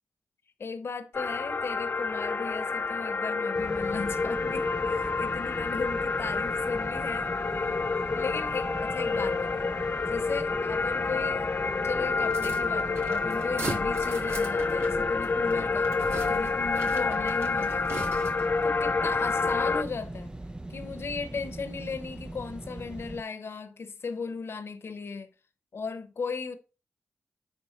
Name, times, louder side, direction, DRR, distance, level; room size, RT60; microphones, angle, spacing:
voice 1, 0.6-9.7 10.1-11.5 11.8-15.9 16.3-18.1 18.6-20.3 20.7-25.3 25.7-26.6, left 5 dB, 65° left, 1.0 m, -37 dB
sound 1, 1.1-19.8, left 4 dB, 50° left, 0.6 m, -28 dB
sound 2, 3.6-23.2, right 1 dB, 20° right, 0.5 m, -41 dB
sound 3, 12.3-18.6, right 3 dB, 70° right, 1.9 m, -40 dB
10.0 x 3.4 x 4.3 m
cardioid pair, 45°, 4 cm